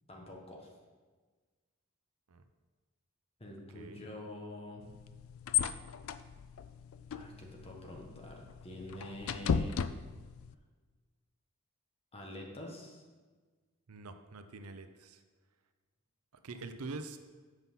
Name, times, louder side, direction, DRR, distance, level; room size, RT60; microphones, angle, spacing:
voice 1, 0.1-0.7 3.4-4.9 7.1-9.8 12.1-13.0 16.5-16.6, left 1 dB, 25° left, 0 dB, 1.3 m, -46 dB
sound 1, 4.8-10.5, left 7 dB, 65° left, 0.3 m, -36 dB
voice 2, 13.9-15.2 16.4-17.2, right 3 dB, 80° right, 8 dB, 0.6 m, -45 dB
8.0 x 5.6 x 5.5 m, 1.4 s
head